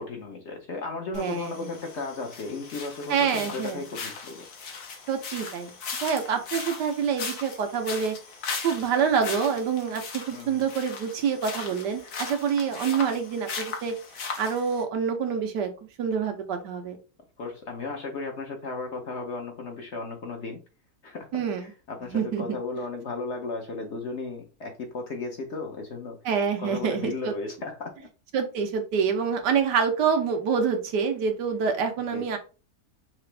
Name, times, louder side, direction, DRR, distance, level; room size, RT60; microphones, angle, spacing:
voice 1, 0.0-4.5 10.3-10.7 12.0-12.3 17.4-20.6 21.0-26.2 26.6-28.1 32.1-32.3, left 3 dB, 55° left, 3 dB, 0.9 m, -35 dB
sound 1, 1.1-14.8, left 5 dB, 70° left, 1.5 m, -38 dB
voice 2, 1.1-1.7 3.1-3.8 5.1-5.7 6.0-8.2 8.6-13.9 14.4-15.7 16.0-17.0 21.3-21.7 22.1-22.4 26.2-27.3 28.3-32.4, right 6 dB, 85° right, 5 dB, 1.5 m, -26 dB
5.8 x 2.5 x 3.3 m, 0.33 s
omnidirectional pair, 1.8 m